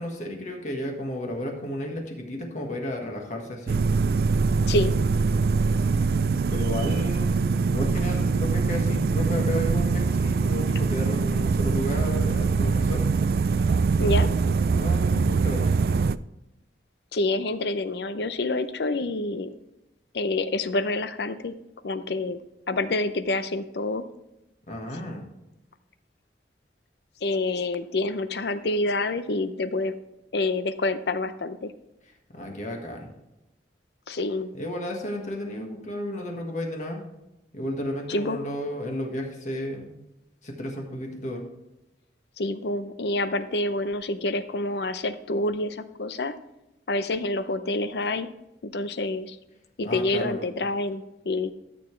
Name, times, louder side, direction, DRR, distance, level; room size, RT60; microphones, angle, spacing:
voice 1, 0.0-3.8 6.5-13.0 14.7-15.7 24.7-25.2 32.3-33.1 34.5-37.0 37.5-39.9 40.4-41.4 49.8-50.4, left 1 dB, 45° left, 1 dB, 1.6 m, -33 dB
sound 1, 3.7-16.2, right 4 dB, 55° right, 0.3 m, -23 dB
voice 2, 14.0-14.3 17.1-19.5 20.1-21.5 21.8-24.0 27.2-29.9 30.3-31.7 34.1-34.5 38.1-38.4 42.4-46.3 46.9-48.3 48.6-49.4 49.8-51.5, left 2 dB, 70° left, 12 dB, 0.6 m, -27 dB
13.0 x 6.9 x 3.2 m, 0.95 s
head